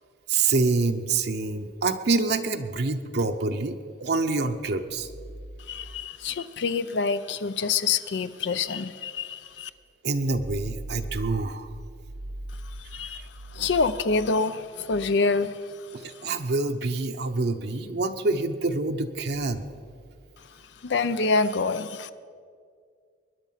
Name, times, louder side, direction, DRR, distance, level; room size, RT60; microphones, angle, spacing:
voice 1, 0.3-5.1 10.0-11.7 15.9-19.6, right 3 dB, 60° right, 6 dB, 0.8 m, -26 dB
voice 2, 5.7-9.7 12.8-13.2 13.5-15.6 20.8-22.1, left 4 dB, 70° left, 12 dB, 0.5 m, -26 dB
21.0 x 10.0 x 5.7 m, 2.1 s
head